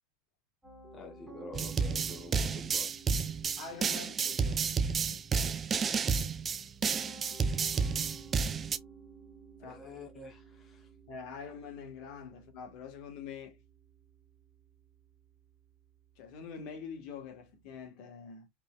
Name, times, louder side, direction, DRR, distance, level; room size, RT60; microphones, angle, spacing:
Piano, 0.6-17.7, right 4 dB, 5° right, 2.4 m, -55 dB
voice 1, 0.9-2.9 9.6-10.9, left 3 dB, 20° left, 1.1 m, -48 dB
sound 1, 1.5-8.8, right 5 dB, 25° right, 0.4 m, -31 dB
voice 2, 3.6-5.2 9.6-9.8 11.1-13.6 16.2-18.5, left 6 dB, 55° left, 1.6 m, -45 dB
4.3 x 3.5 x 2.4 m
supercardioid pair, 135°, 0 cm